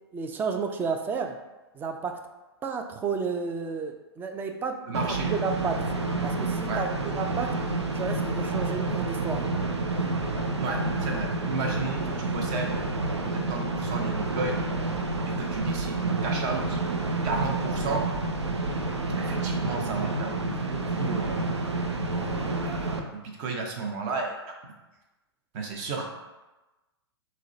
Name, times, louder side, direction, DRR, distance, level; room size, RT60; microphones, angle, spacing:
voice 1, 0.1-1.4 1.7-2.2 2.6-5.8 6.2-7.6 7.9-9.4, right 5 dB, 15° right, 5 dB, 0.3 m, -32 dB
voice 2, 4.8-5.3 6.7-6.9 10.6-12.9 13.3-14.7 15.2-16.8 17.2-18.1 19.2-21.4 22.0-24.3 24.6-24.7 25.5-26.0, right 4 dB, 40° right, 1 dB, 0.8 m, -33 dB
sound 1, 4.9-23.0, right 2 dB, 90° right, 0.5 m, -29 dB
6.1 x 2.1 x 2.7 m, 1.1 s
figure-of-eight pair, 115°, 14 cm